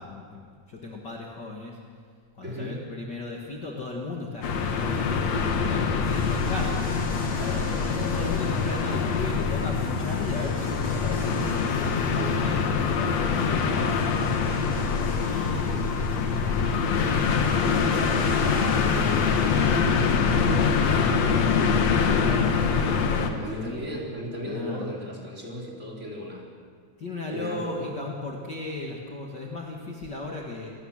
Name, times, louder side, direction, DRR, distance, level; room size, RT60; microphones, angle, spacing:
voice 1, 0.0-1.8 2.4-6.8 7.8-14.3 15.3-19.8 20.2-23.8 24.4-24.9 27.0-30.7, left 3 dB, 40° left, 0 dB, 2.3 m, -37 dB
voice 2, 2.4-2.8 7.4-8.0 15.5-15.9 22.7-23.1 23.4-26.5 27.3-27.9, equal, 20° right, -1 dB, 4.2 m, -36 dB
sound 1, 4.4-23.3, left 5 dB, 65° left, 2.7 m, -24 dB
sound 2, 6.0-21.0, left 2 dB, 5° left, 4.4 m, -44 dB
27.5 x 18.5 x 7.5 m, 2.2 s
omnidirectional pair, 3.5 m